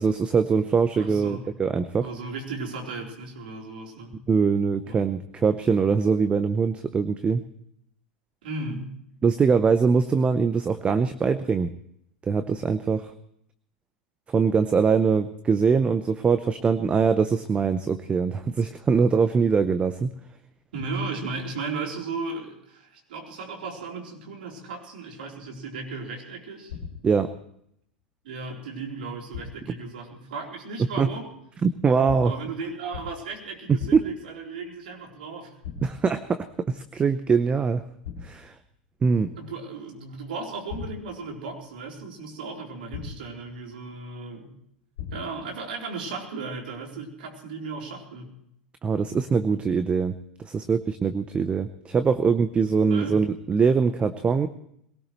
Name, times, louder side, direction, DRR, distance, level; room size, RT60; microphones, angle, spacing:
voice 1, 0.0-2.1 4.3-7.4 9.2-11.7 12.2-13.1 14.3-20.1 27.0-27.3 30.8-31.1 31.6-32.3 33.7-34.0 35.8-37.8 38.2-38.5 39.0-39.3 48.8-50.1 50.4-54.5, right 5 dB, 20° right, 11 dB, 0.8 m, -22 dB
voice 2, 1.0-1.5 2.0-4.2 4.9-5.0 8.4-8.9 20.7-26.8 28.2-31.3 32.2-35.5 39.4-44.5 45.1-48.3 52.9-53.2, right 3 dB, 70° right, 0 dB, 3.9 m, -35 dB
sound 1, 26.7-27.3 29.3-29.8 32.1-32.5 32.9-33.4 33.8-34.3 35.6-36.2 38.0-38.5 40.7-41.3 42.9-43.5 45.0-45.5, left 7 dB, 65° left, 2.9 m, -38 dB
22.0 x 17.5 x 3.2 m, 0.73 s
hypercardioid pair, 95°, 5 cm